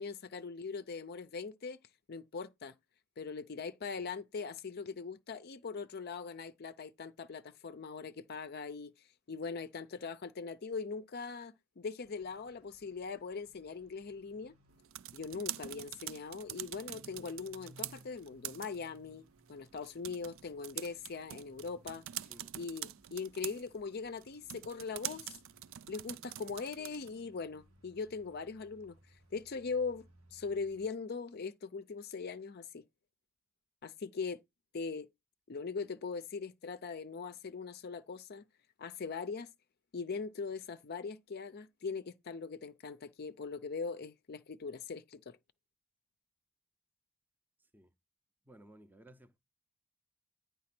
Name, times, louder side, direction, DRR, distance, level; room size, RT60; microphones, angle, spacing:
voice 1, 0.0-1.8 2.1-2.7 3.2-14.5 15.1-22.0 22.5-25.4 25.9-30.0 30.3-32.8 33.8-34.4 34.7-35.1 35.5-38.4 38.8-39.5 39.9-45.4, left 5 dB, 45° left, 0.5 m, -41 dB
sound 1, 12.0-30.9, right 1 dB, 85° right, 1.7 m, -65 dB
sound 2, 14.7-27.2, right 13 dB, 65° right, 0.4 m, -46 dB
voice 2, 48.5-49.4, right 1 dB, 10° right, 0.6 m, -58 dB
9.6 x 3.4 x 5.9 m
head